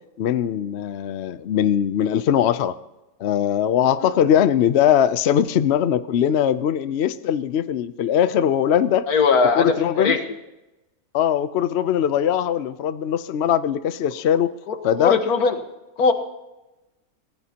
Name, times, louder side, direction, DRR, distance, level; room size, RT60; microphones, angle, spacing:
voice 1, 0.2-2.7 3.2-9.1 9.5-10.2 11.1-14.5 14.8-15.2, left 9 dB, 60° left, 14 dB, 0.7 m, -20 dB
voice 2, 9.1-10.2 14.7-15.6 16.0-16.1, left 5 dB, 85° left, 7 dB, 1.9 m, -20 dB
25.0 x 16.5 x 2.9 m, 1.0 s
omnidirectional pair, 1.6 m